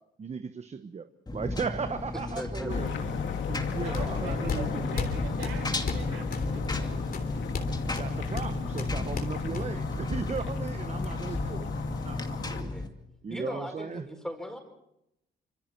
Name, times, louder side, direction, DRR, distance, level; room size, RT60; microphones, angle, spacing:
voice 1, 0.2-2.9 3.5-4.9 7.9-12.7 13.2-14.0, right 5 dB, 35° right, 1.0 m, -37 dB
Engine, 1.3-12.9, left 2 dB, 20° left, 2.4 m, -34 dB
voice 2, 2.1-3.3 12.6-12.9 13.3-14.6, equal, ahead, 5.2 m, -39 dB
sound 1, 2.7-12.6, left 6 dB, 70° left, 2.2 m, -37 dB
sound 2, 3.7-10.0, left 5 dB, 50° left, 3.4 m, -37 dB
voice 3, 3.7-7.2, right 5 dB, 90° right, 5.3 m, -42 dB
26.0 x 25.5 x 4.6 m
cardioid pair, 90°, 20 cm